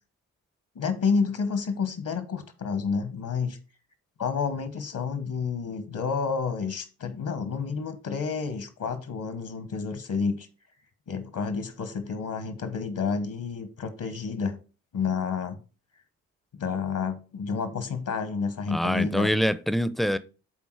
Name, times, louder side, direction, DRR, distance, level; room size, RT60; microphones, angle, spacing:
voice 1, 0.7-3.6 4.2-10.5 11.1-14.6 14.9-15.6 16.6-19.3, left 5 dB, 65° left, 1.4 m, -30 dB
voice 2, 18.7-20.2, equal, ahead, 0.6 m, -25 dB
8.1 x 3.8 x 4.8 m
supercardioid pair, 55°, 35 cm